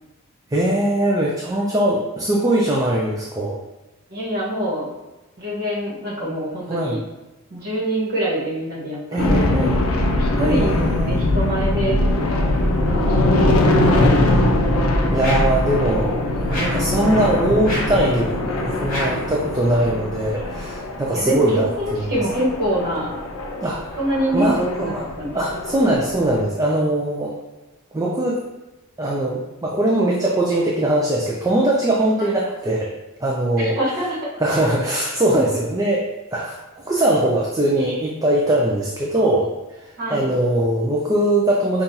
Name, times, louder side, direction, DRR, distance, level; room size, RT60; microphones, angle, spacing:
voice 1, 0.5-3.6 6.7-7.0 9.1-9.8 10.4-11.2 15.1-18.3 18.6-22.1 23.6-24.0 24.3-25.0 25.3-27.4 27.9-28.4 29.0-32.9 33.2-33.8 34.4-36.0 36.3-39.5 39.8-41.8, right 1 dB, 15° right, -3 dB, 0.4 m, -21 dB
voice 2, 4.1-4.8 5.4-7.0 7.5-9.5 10.1-12.0 12.9-14.6 21.1-23.1 24.0-25.6 32.2-32.3 33.6-34.3 35.2-35.4 40.0-40.3, right 1 dB, 45° right, -6 dB, 1.2 m, -25 dB
sound 1, 9.2-26.4, left 1 dB, 75° left, 0.5 m, -21 dB
sound 2, 15.2-15.6 16.5-16.9 17.6-18.0 18.9-19.3, left 1 dB, 40° left, 1.2 m, -28 dB
5.4 x 2.4 x 2.7 m, 1.1 s
head